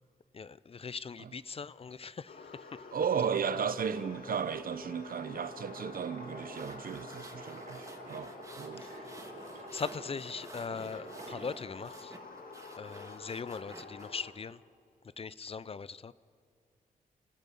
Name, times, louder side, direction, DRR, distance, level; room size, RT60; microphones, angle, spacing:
voice 1, 0.3-2.3 9.7-12.1 12.8-14.6 15.2-16.1, left 5 dB, 40° left, 0.5 m, -40 dB
sound 1, 2.3-14.3, left 4 dB, 75° left, 1.8 m, -49 dB
voice 2, 2.9-8.9, right 7 dB, 70° right, 1.0 m, -35 dB
sound 2, 5.3-11.7, right 3 dB, 55° right, 2.9 m, -49 dB
sound 3, 6.3-14.2, right 2 dB, 20° right, 1.9 m, -53 dB
29.5 x 14.5 x 8.5 m
wide cardioid pair, 125°, 15 cm